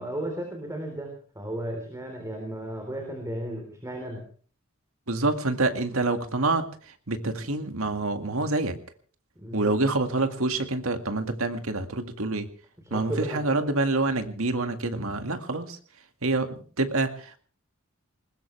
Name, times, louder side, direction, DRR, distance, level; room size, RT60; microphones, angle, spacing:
voice 1, 0.0-4.2 9.4-9.8 12.9-13.4, right 1 dB, 15° right, 2 dB, 3.7 m, -34 dB
voice 2, 5.1-8.8 9.5-12.5 12.9-15.8 16.2-17.4, right 2 dB, 75° right, 7 dB, 2.0 m, -27 dB
20.5 x 20.5 x 3.3 m, 0.41 s
head